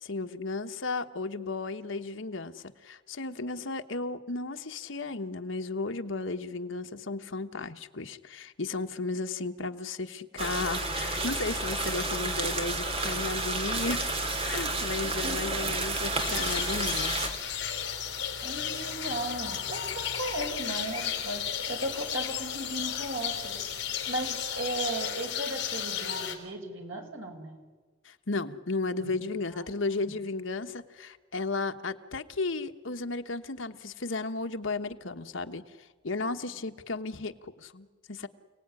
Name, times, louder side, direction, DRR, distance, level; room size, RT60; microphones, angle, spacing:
voice 1, 0.0-14.1 14.4-17.2 28.0-38.3, left 3 dB, 75° left, 7 dB, 1.3 m, -34 dB
sound 1, 10.4-17.3, right 2 dB, 30° right, 2.5 m, -31 dB
voice 2, 15.0-15.4 18.4-23.6 24.1-27.6 29.0-29.1, right 2 dB, 80° right, 3 dB, 5.4 m, -36 dB
sound 2, 16.2-26.3, left 9 dB, 55° left, 4.1 m, -34 dB
29.5 x 18.5 x 9.8 m, 1.4 s
head